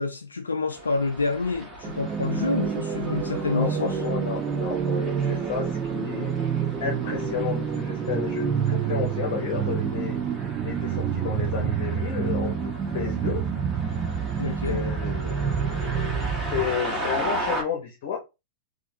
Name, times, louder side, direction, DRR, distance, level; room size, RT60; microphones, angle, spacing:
voice 1, 0.0-4.0 14.4-14.8, left 3 dB, 85° left, 0.4 m, -28 dB
sound 1, 0.7-17.6, right 1 dB, 10° right, 1.6 m, -37 dB
sound 2, 1.8-16.8, right 7 dB, 30° right, 0.4 m, -28 dB
voice 2, 3.5-6.3 6.8-10.2 10.6-13.4 14.4-18.2, left 7 dB, 55° left, 0.9 m, -32 dB
3.8 x 2.4 x 2.6 m
hypercardioid pair, 100°, 0 cm